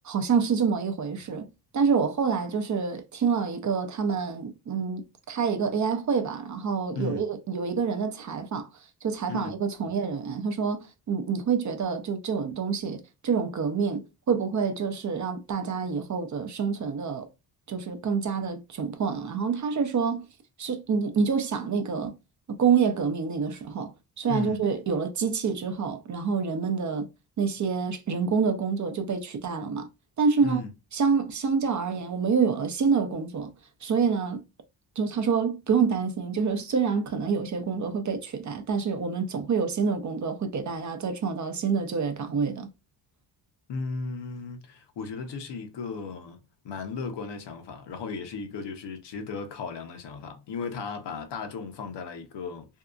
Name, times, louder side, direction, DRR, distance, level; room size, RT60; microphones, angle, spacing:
voice 1, 0.0-8.7 9.0-17.3 17.7-20.2 20.6-22.2 22.5-27.1 27.4-29.9 30.2-30.6 30.9-33.5 33.8-34.4 35.0-42.7, right 5 dB, 45° right, 0.6 m, -27 dB
voice 2, 24.3-24.6 30.4-30.7 43.7-46.4 46.6-52.7, left 4 dB, 75° left, 0.8 m, -35 dB
2.7 x 2.3 x 2.3 m
cardioid pair, 95°, 43 cm